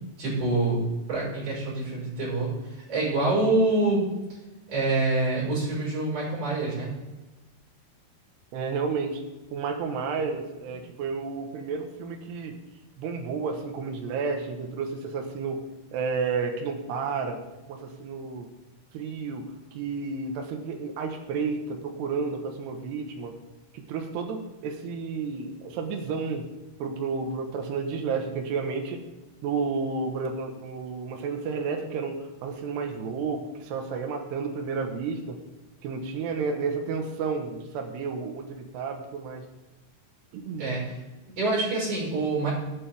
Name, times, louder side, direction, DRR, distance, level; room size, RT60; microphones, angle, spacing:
voice 1, 0.2-4.1 4.7-6.9 40.6-41.0 41.4-42.5, right 2 dB, 50° right, -5 dB, 6.6 m, -26 dB
voice 2, 8.5-9.2 9.5-12.6 13.0-15.6 15.9-17.4 17.7-18.5 18.9-19.4 19.7-23.4 23.7-26.5 26.8-29.0 29.4-35.4 35.8-39.4 40.3-40.7, right 5 dB, 85° right, 4 dB, 3.4 m, -31 dB
17.0 x 9.3 x 3.6 m, 1.1 s
omnidirectional pair, 4.7 m